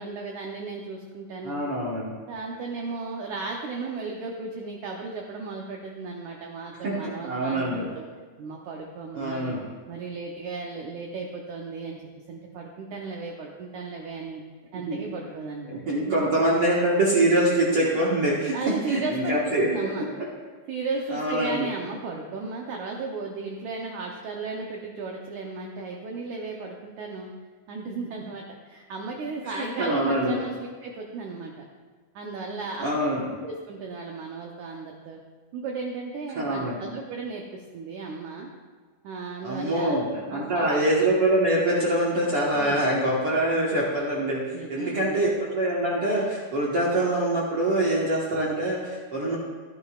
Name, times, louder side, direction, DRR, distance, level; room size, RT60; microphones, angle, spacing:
voice 1, 0.0-1.6 2.3-8.1 8.4-9.6 9.9-12.0 12.3-14.4 14.7-16.2 18.5-20.1 20.7-27.3 27.7-31.7 32.1-32.9 33.4-35.2 35.5-38.5 39.0-40.0 40.3-40.7 42.5-42.8 44.5-45.2, right 4 dB, 80° right, 0 dB, 1.7 m, -35 dB
voice 2, 1.4-2.1 6.8-7.8 9.1-9.6 14.7-15.0 15.7-18.5 18.9-20.2 21.1-21.6 29.4-30.4 32.8-33.3 36.3-36.8 39.4-44.4 44.7-49.4, right 1 dB, 55° right, -6 dB, 1.6 m, -24 dB
14.5 x 11.0 x 2.4 m, 1.5 s
omnidirectional pair, 4.5 m